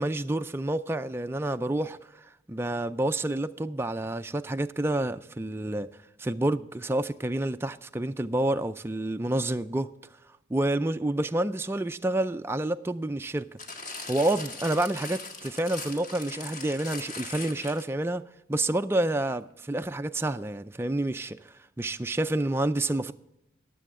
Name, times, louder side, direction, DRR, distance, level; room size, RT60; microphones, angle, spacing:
voice 1, 0.0-2.0 2.5-5.9 6.2-9.9 10.5-13.6 14.1-21.4 21.8-23.1, right 1 dB, 10° right, 0.3 m, -28 dB
sound 1, 13.6-18.0 18.8-18.9, left 3 dB, 40° left, 1.8 m, -40 dB
23.0 x 7.7 x 3.6 m
head